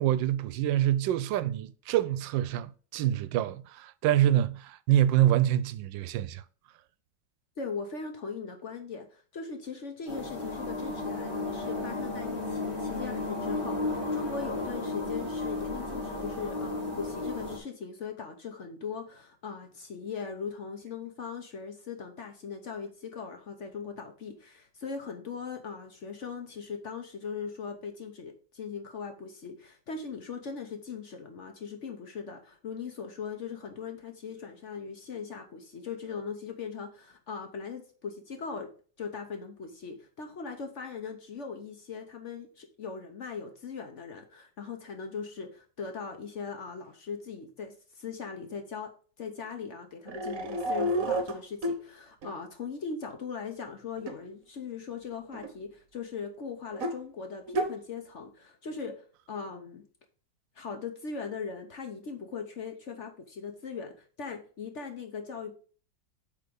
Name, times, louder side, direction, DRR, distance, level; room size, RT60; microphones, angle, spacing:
voice 1, 0.0-6.4, right 12 dB, 85° right, 1.3 m, -26 dB
voice 2, 7.6-38.7 39.0-48.9 49.2-59.9 60.5-65.6, left 5 dB, 50° left, 1.0 m, -39 dB
sound 1, 10.1-17.6, left 2 dB, 30° left, 1.9 m, -33 dB
sound 2, 50.1-51.8 52.2-52.3 54.0-54.1 55.3-55.5 56.7-57.0 57.5-57.7, right 1 dB, 55° right, 1.2 m, -30 dB
8.1 x 3.5 x 5.2 m
omnidirectional pair, 2.0 m